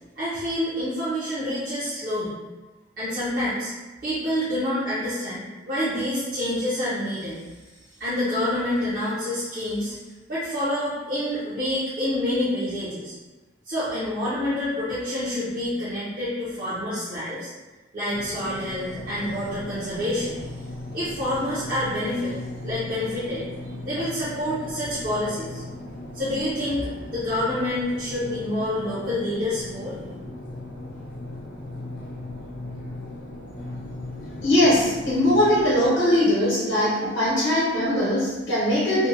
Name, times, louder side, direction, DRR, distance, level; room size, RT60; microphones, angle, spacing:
voice 1, 0.2-2.4 3.0-3.7 4.0-7.4 8.0-10.0 10.3-13.1 13.6-17.5 17.9-20.4 20.9-22.4 22.6-23.4 23.8-25.6 26.1-26.9 27.1-29.9, left 1 dB, 50° right, -12 dB, 0.6 m, -27 dB
sound 1, 18.1-35.9, left 1 dB, 50° left, 0.5 m, -38 dB
voice 2, 34.4-39.1, left 1 dB, 85° left, -8 dB, 0.8 m, -21 dB
2.6 x 2.1 x 2.6 m, 1.2 s
head